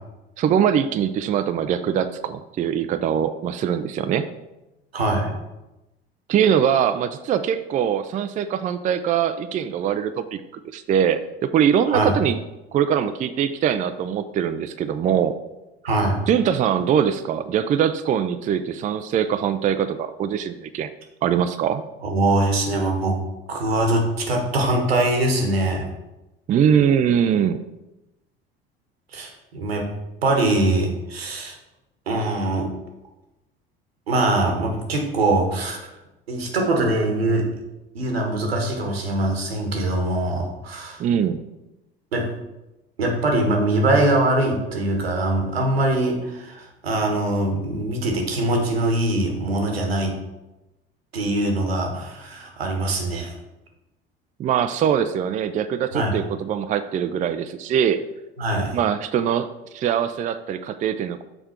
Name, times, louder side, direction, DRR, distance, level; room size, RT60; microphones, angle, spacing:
voice 1, 0.4-4.3 6.3-10.4 10.7-12.4 12.7-15.3 16.3-20.9 21.2-21.8 26.5-27.6 41.0-41.4 54.4-58.0 58.7-59.5 59.7-61.2, right 8 dB, 25° right, 10 dB, 0.4 m, -22 dB
voice 2, 4.9-5.3 11.9-12.1 15.8-16.2 22.0-23.2 23.5-25.9 29.1-29.9 30.2-31.6 32.1-32.7 34.1-35.8 36.3-37.5 37.9-41.0 42.1-42.3 43.0-50.2 51.1-53.3 55.9-56.2 58.4-58.8, right 2 dB, 85° right, 2 dB, 1.2 m, -22 dB
6.7 x 4.4 x 4.3 m, 0.99 s
figure-of-eight pair, 65°, 30 cm